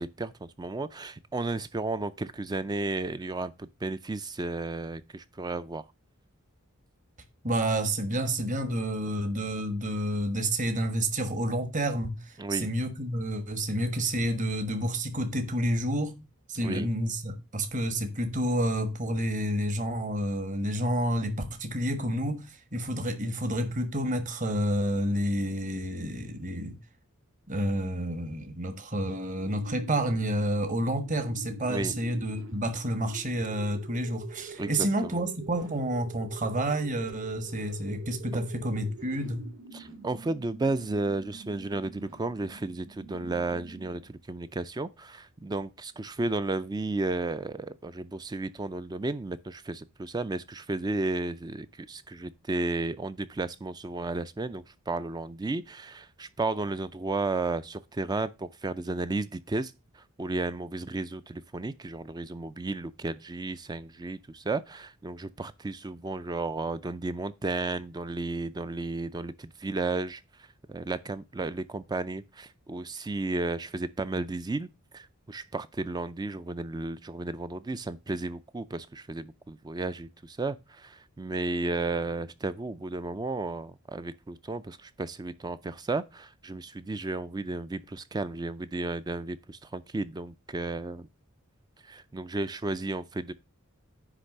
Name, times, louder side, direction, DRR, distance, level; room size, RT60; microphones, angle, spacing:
voice 1, 0.0-5.9 12.4-12.7 16.6-16.9 31.7-31.9 34.6-35.2 38.3-38.4 39.7-74.7 74.9-91.1 91.8-93.3, right 2 dB, 20° right, 0.4 m, -33 dB
voice 2, 7.4-12.2 12.5-16.2 16.5-26.8 27.5-39.5, right 1 dB, 35° right, 1.4 m, -29 dB
sound 1, 29.3-44.2, right 4 dB, 65° right, 2.6 m, -47 dB
9.8 x 3.3 x 6.5 m
head